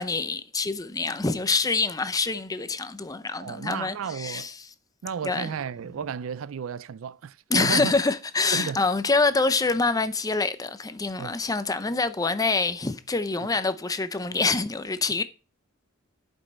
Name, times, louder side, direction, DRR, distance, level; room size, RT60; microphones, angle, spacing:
voice 1, 0.0-4.5 5.2-5.5 7.5-15.2, left 3 dB, 20° left, 0.6 m, -26 dB
voice 2, 3.4-4.5 5.0-7.9 8.5-8.8 11.2-11.4, right 6 dB, 75° right, 0.4 m, -33 dB
11.5 x 5.4 x 4.3 m
head